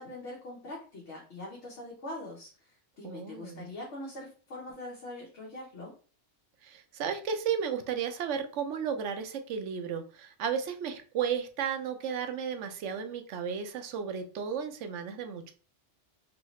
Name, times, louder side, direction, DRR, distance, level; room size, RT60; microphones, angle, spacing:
voice 1, 0.0-5.9, left 1 dB, 70° left, -4 dB, 1.2 m, -43 dB
voice 2, 3.0-3.7 6.6-15.5, right 7 dB, 80° right, 7 dB, 0.9 m, -34 dB
3.2 x 2.7 x 3.0 m, 0.39 s
omnidirectional pair, 1.2 m